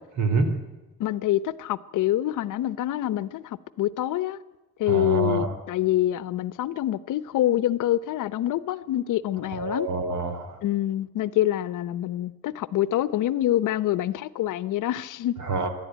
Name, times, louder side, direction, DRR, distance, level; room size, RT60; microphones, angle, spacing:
voice 1, 0.2-0.5 4.9-5.5 9.5-10.6 15.5-15.7, right 3 dB, 65° right, 3.4 m, -26 dB
voice 2, 1.0-4.4 4.8-9.9 10.6-15.4, left 13 dB, 80° left, 0.9 m, -26 dB
26.5 x 11.0 x 9.3 m
cardioid pair, 160°, 31 cm